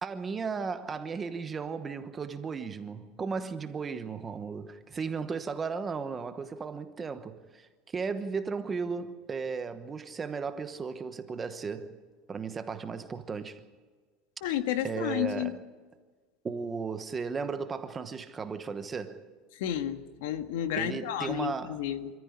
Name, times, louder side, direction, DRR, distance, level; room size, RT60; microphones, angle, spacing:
voice 1, 0.0-11.9 12.3-13.6 14.4-14.6 14.8-15.6 16.4-19.2 20.7-21.8, right 5 dB, 15° right, 1.1 m, -35 dB
voice 2, 14.4-15.5 19.6-22.1, left 11 dB, 75° left, 1.8 m, -31 dB
26.5 x 14.0 x 10.0 m
supercardioid pair, 175°, 0 cm